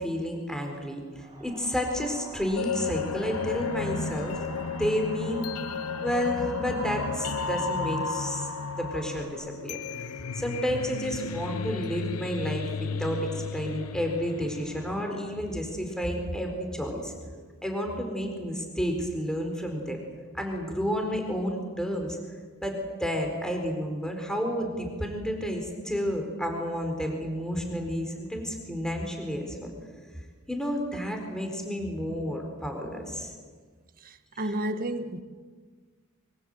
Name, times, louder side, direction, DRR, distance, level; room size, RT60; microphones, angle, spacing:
voice 1, 0.0-4.4 4.7-5.5 6.0-9.8 10.3-17.2 17.6-20.0 20.3-22.2 22.6-29.7 30.5-33.3, equal, 5° left, 4.4 m, -31 dB
Wind, 1.2-9.3, right 2 dB, 25° right, 5.8 m, -41 dB
sound 1, 2.6-15.5, left 5 dB, 90° left, 0.8 m, -34 dB
voice 2, 34.0-35.2, right 1 dB, 40° right, 1.7 m, -31 dB
27.0 x 24.5 x 7.9 m
head